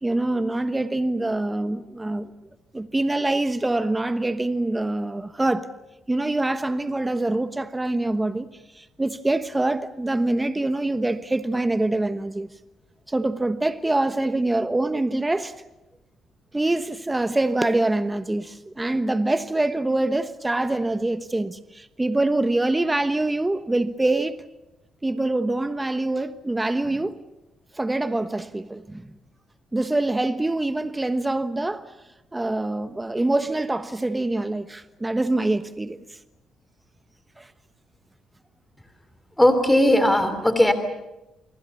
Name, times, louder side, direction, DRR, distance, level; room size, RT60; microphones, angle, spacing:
voice 1, 0.0-2.3 2.7-5.7 6.1-8.5 8.7-12.5 13.1-15.5 16.5-24.4 25.0-27.2 27.7-29.1 29.7-31.9 32.3-36.0 37.4-37.5, right 2 dB, 15° right, 1.1 m, -25 dB
voice 2, 39.4-40.7, left 1 dB, 10° left, 3.2 m, -18 dB
28.5 x 22.5 x 7.1 m
cardioid pair, 90°, 0 cm